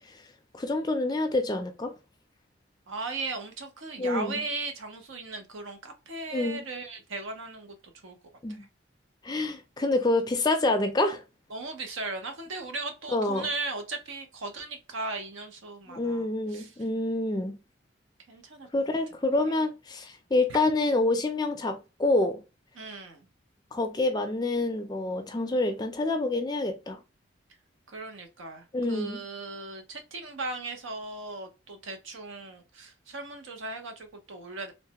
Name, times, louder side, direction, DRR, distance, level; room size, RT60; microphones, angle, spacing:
voice 1, 0.5-1.9 4.0-4.4 6.3-6.6 8.4-8.6 9.2-11.2 13.1-13.5 15.9-17.6 18.7-22.4 23.7-27.0 28.7-29.2, left 2 dB, 20° left, 0.3 m, -27 dB
voice 2, 2.9-7.7 8.0-8.2 8.5-8.6 11.5-16.7 18.3-18.7 19.5-19.6 22.8-23.3 27.9-34.7, right 3 dB, 75° right, 0.7 m, -37 dB
3.2 x 2.1 x 2.8 m
head